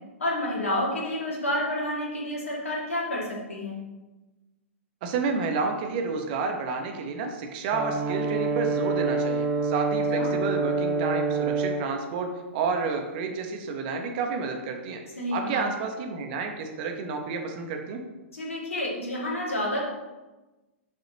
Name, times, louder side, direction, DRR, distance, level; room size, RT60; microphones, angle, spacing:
voice 1, 0.2-3.8 10.1-10.3 15.2-15.7 18.3-19.8, left 1 dB, 75° left, -3 dB, 2.2 m, -29 dB
voice 2, 5.0-15.0 15.3-18.0, right 4 dB, 45° right, 4 dB, 1.1 m, -30 dB
Brass instrument, 7.7-11.9, right 3 dB, 20° right, 0.5 m, -26 dB
7.0 x 6.3 x 3.0 m, 1.1 s
figure-of-eight pair, 110°, 7 cm